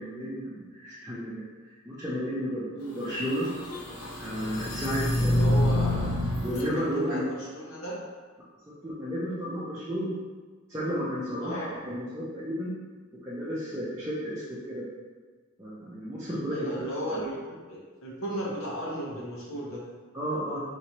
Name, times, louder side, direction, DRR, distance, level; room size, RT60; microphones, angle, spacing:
voice 1, 0.0-1.5 1.9-3.5 4.1-5.5 5.7-5.8 6.4-7.2 8.8-10.1 10.7-12.7 13.2-14.8 15.6-16.7 20.1-20.6, equal, 15° right, -9 dB, 0.6 m, -32 dB
sound 1, 2.9-6.7, left 1 dB, 85° left, 0.8 m, -27 dB
voice 2, 5.2-6.1 6.5-8.0 11.4-11.7 16.5-19.8, right 1 dB, 70° left, -5 dB, 1.1 m, -35 dB
4.3 x 3.0 x 2.9 m, 1.4 s
head